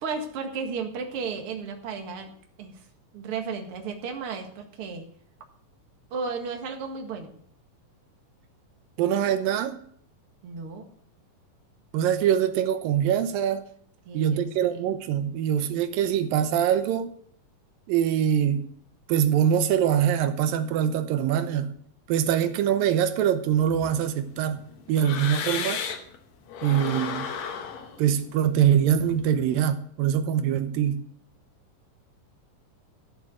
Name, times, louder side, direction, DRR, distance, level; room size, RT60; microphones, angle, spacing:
voice 1, 0.0-2.3 2.6-2.8 3.1-5.1 6.1-7.3 10.4-10.8 14.1-14.8, right 5 dB, 45° right, 2.3 m, -34 dB
voice 2, 9.0-9.8 11.9-13.6 14.1-17.1 17.9-18.7 19.1-21.7 22.1-24.6 24.9-25.8 26.6-27.3 28.0-31.0, right 9 dB, 90° right, 2.6 m, -23 dB
sound 1, 23.5-26.2 26.5-29.6, left 7 dB, 80° left, 3.0 m, -35 dB
14.0 x 7.0 x 7.8 m
omnidirectional pair, 3.9 m